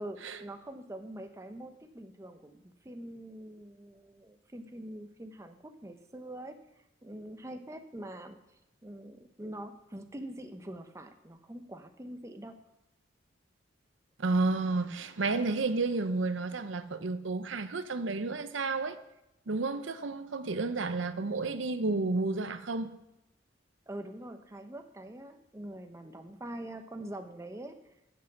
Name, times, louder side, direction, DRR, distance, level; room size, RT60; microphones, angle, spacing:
voice 1, 0.0-12.6 23.9-27.9, right 1 dB, 15° right, 0.7 m, -44 dB
voice 2, 14.2-19.0 19.5-22.9, right 3 dB, 85° right, 0.7 m, -31 dB
8.2 x 7.6 x 7.2 m
head